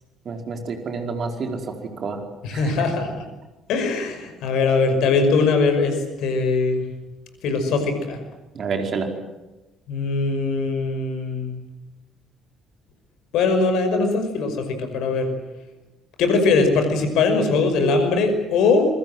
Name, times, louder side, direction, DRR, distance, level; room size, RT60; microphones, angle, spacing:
voice 1, 0.3-1.6 2.0-2.2 8.6-9.1, right 4 dB, 45° right, 4 dB, 4.8 m, -28 dB
voice 2, 2.4-3.2 3.7-6.8 7.4-8.2 9.9-11.6 13.3-15.3 16.2-18.9, left 4 dB, 60° left, 7 dB, 5.7 m, -21 dB
26.5 x 24.5 x 7.8 m, 1.0 s
figure-of-eight pair, 50°, 0 cm